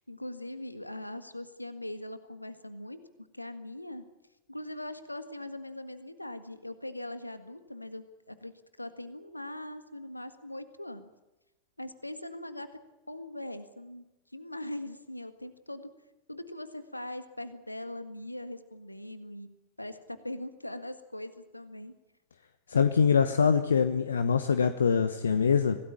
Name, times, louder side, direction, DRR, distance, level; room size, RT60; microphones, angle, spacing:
voice 1, 0.0-3.0 3.3-4.1 4.5-8.5 8.8-11.1 11.8-12.7 13.1-14.0 14.3-15.9 16.3-19.5 19.8-21.9, left 1 dB, 85° left, 10 dB, 1.7 m, -41 dB
voice 2, 22.7-25.8, left 6 dB, 70° left, 10 dB, 1.1 m, -24 dB
26.0 x 18.0 x 8.7 m, 1.0 s
figure-of-eight pair, 90°, 0 cm